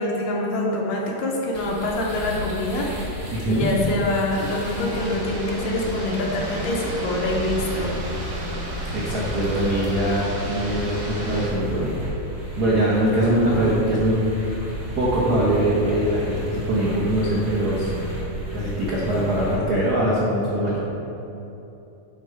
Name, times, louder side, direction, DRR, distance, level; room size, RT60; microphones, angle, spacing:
voice 1, 0.0-2.9 3.5-8.0, left 1 dB, 75° left, -2 dB, 2.2 m, -25 dB
sound 1, 1.5-19.6, equal, 25° right, 1.7 m, -33 dB
voice 2, 3.3-3.7 8.9-11.9 12.6-14.2 15.0-17.9 18.5-20.8, right 1 dB, 65° right, -7 dB, 0.9 m, -22 dB
sound 2, 4.3-11.5, equal, 40° right, 1.6 m, -34 dB
11.0 x 3.9 x 4.6 m, 3.0 s
omnidirectional pair, 3.4 m